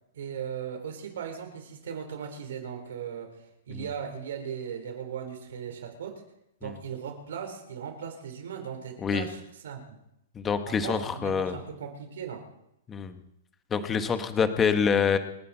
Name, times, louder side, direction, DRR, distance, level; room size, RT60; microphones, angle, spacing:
voice 1, 0.1-6.2 6.6-10.0 10.7-12.5, right 7 dB, 75° right, 4 dB, 4.3 m, -38 dB
voice 2, 10.3-11.5 12.9-13.2 13.7-15.2, left 6 dB, 15° left, 9 dB, 1.2 m, -26 dB
28.5 x 10.5 x 4.4 m, 0.82 s
hypercardioid pair, 160°, 0 cm